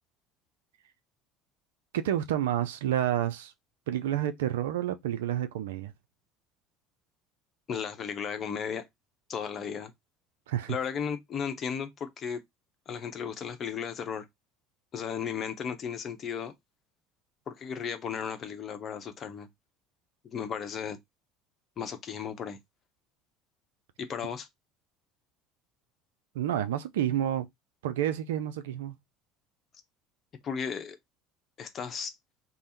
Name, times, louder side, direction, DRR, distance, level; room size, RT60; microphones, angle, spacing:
voice 1, 1.9-3.5 3.9-5.9 10.5-10.8 26.3-27.5 27.8-29.0, right 11 dB, 70° right, 0.3 m, -29 dB
voice 2, 7.7-8.9 9.3-9.9 10.7-12.4 12.9-14.2 14.9-16.5 17.5-19.5 20.2-21.0 21.8-22.6 24.0-24.5 30.4-31.0 31.6-32.1, left 7 dB, 40° left, 0.8 m, -35 dB
3.4 x 2.0 x 4.1 m
figure-of-eight pair, 65°, 0 cm